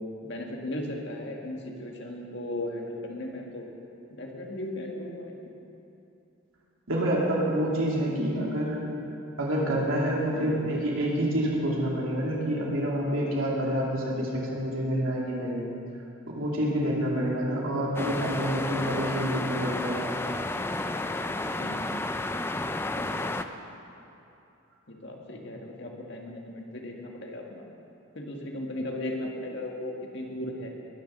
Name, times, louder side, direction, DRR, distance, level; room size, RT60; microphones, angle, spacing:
voice 1, 0.2-3.7 4.1-5.5 7.9-8.5 10.3-10.6 21.6-21.9 22.9-23.3 24.9-27.7 28.2-30.7, left 1 dB, 55° left, 0 dB, 1.8 m, -36 dB
voice 2, 6.9-8.8 9.4-15.7 16.3-20.0, equal, 80° right, -4 dB, 2.8 m, -28 dB
sound 1, 17.9-23.4, left 2 dB, 10° left, 0.4 m, -31 dB
21.0 x 7.1 x 6.7 m, 2.8 s
head